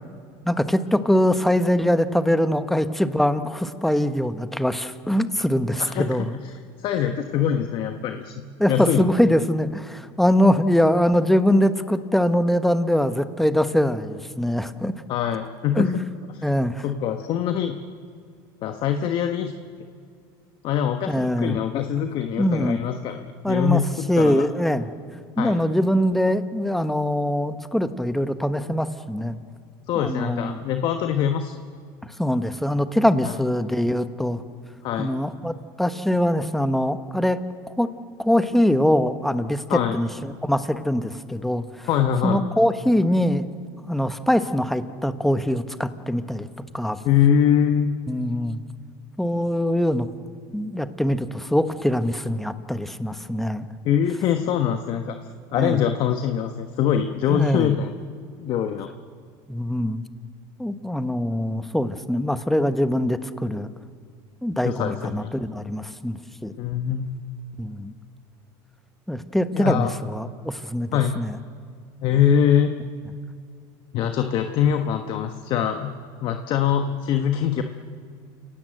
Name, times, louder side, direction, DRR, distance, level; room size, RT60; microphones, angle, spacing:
voice 1, 0.5-6.4 8.6-14.9 15.8-16.0 16.4-16.8 21.1-21.6 22.4-22.8 23.4-23.8 24.1-24.9 25.4-29.4 30.0-30.6 32.2-34.4 35.0-37.4 37.8-37.9 38.2-41.9 42.2-43.5 43.9-46.5 46.7-47.0 48.1-48.6 49.2-50.1 50.5-53.6 55.6-55.8 57.3-57.7 59.5-60.0 60.6-63.7 64.4-66.5 67.6-67.9 69.1-70.9 71.2-71.4, equal, ahead, 10 dB, 1.1 m, -23 dB
voice 2, 5.8-8.3 8.7-9.3 15.1-16.0 16.3-16.5 16.8-17.8 18.6-19.5 20.6-24.5 25.4-25.6 29.9-31.6 33.2-33.4 34.8-35.1 39.7-40.0 41.9-42.4 47.0-47.9 53.8-55.2 55.5-57.9 58.4-58.9 64.6-65.3 66.6-67.1 69.5-69.9 70.9-71.2 72.0-72.8 73.9-75.9 76.2-77.6, left 9 dB, 50° left, 6 dB, 1.3 m, -23 dB
29.5 x 17.5 x 7.8 m, 2.2 s
supercardioid pair, 120°, 11 cm